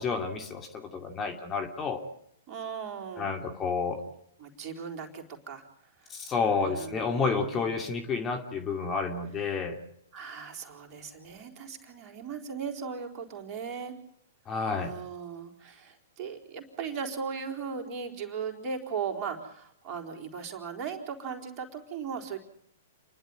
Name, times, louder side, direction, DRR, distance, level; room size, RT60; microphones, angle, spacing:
voice 1, 0.0-2.0 3.2-4.0 6.1-9.8 14.5-14.9, left 4 dB, 25° left, 5 dB, 2.5 m, -30 dB
voice 2, 2.5-3.3 4.4-5.6 6.0-6.2 6.6-7.7 10.1-14.0 14.8-22.5, right 6 dB, 35° right, 2 dB, 4.1 m, -38 dB
29.0 x 12.0 x 9.2 m, 0.72 s
hypercardioid pair, 115°, 0 cm